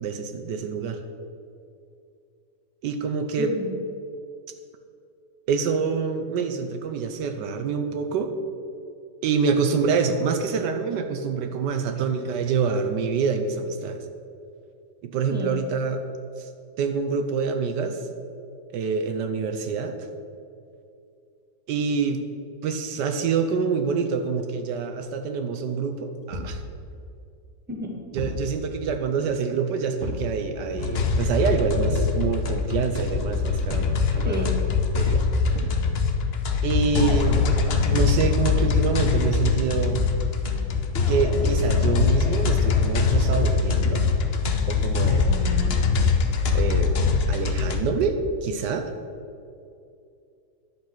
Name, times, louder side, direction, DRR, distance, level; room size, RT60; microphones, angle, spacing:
voice 1, 0.0-1.0 2.8-3.5 5.5-8.3 9.2-14.0 15.0-16.0 16.4-16.5 16.8-18.0 18.7-20.1 21.7-22.3 22.6-26.6 28.1-34.5 34.9-35.3 36.6-37.5 37.9-40.1 41.1-44.0 44.7-45.3 46.5-47.0 47.3-48.9, right 5 dB, 80° right, 7 dB, 1.3 m, -26 dB
voice 2, 3.4-3.7 15.3-15.5 27.7-27.9 34.2-34.6 45.3-45.8, left 1 dB, 5° right, -1 dB, 1.4 m, -31 dB
Thump thud, 26.3-26.6 28.1-28.5 30.0-30.3 31.8-32.2 33.7-34.0 35.5-35.9 37.4-37.7 39.2-39.6, left 1 dB, 50° right, 1.7 m, -33 dB
sound 1, 30.8-47.8, left 5 dB, 45° left, 0.8 m, -23 dB
10.5 x 7.1 x 5.9 m, 2.5 s
omnidirectional pair, 1.9 m